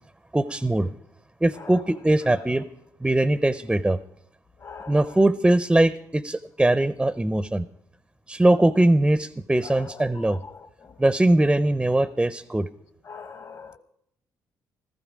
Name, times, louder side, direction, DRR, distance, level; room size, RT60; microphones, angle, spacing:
voice 1, 0.3-0.9 1.4-2.6 3.0-4.0 4.9-7.7 8.3-10.4 11.0-12.7, right 1 dB, 10° right, 0.5 m, -21 dB
voice 2, 4.6-5.2 9.6-11.0 13.0-13.8, left 5 dB, 50° left, 1.1 m, -42 dB
16.0 x 14.0 x 5.0 m
cardioid pair, 95°, 7 cm